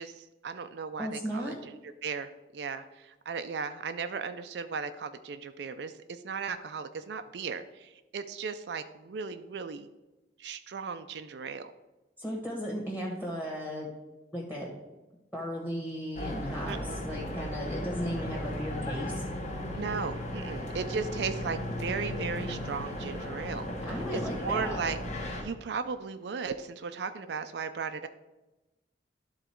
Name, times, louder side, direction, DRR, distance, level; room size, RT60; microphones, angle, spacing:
voice 1, 0.0-9.9 10.4-11.7 16.7-17.0 18.0-18.2 19.7-23.7 24.1-25.0 25.4-28.1, right 5 dB, 70° right, 9 dB, 0.4 m, -36 dB
voice 2, 1.0-1.6 12.2-13.9 14.3-14.7 15.3-19.2 23.9-24.8, equal, 10° left, -3 dB, 1.3 m, -35 dB
sound 1, 16.2-25.4, left 1 dB, 40° left, 1.2 m, -36 dB
11.5 x 3.9 x 4.4 m, 1.0 s
head